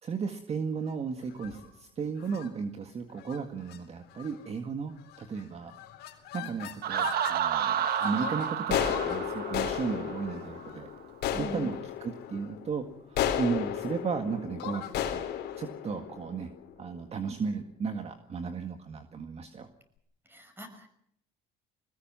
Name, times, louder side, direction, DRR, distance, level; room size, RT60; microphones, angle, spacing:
voice 1, 0.0-5.7 6.3-10.9 11.3-15.3 15.6-16.5 16.8-19.7, right 5 dB, 40° right, 7 dB, 1.9 m, -35 dB
sound 1, 1.3-1.7 2.2-2.5 3.2-3.4 3.7-3.8 4.1-4.5 5.1-5.4 5.7-7.4 7.8-16.9, left 10 dB, 80° left, 3.8 m, -35 dB
Laughter, 6.8-10.5, right 9 dB, 65° right, 1.5 m, -31 dB
voice 2, 11.3-11.7 20.3-20.9, equal, 10° right, 8 dB, 5.9 m, -42 dB
22.0 x 19.5 x 7.6 m, 0.68 s
cardioid pair, 110°, 17 cm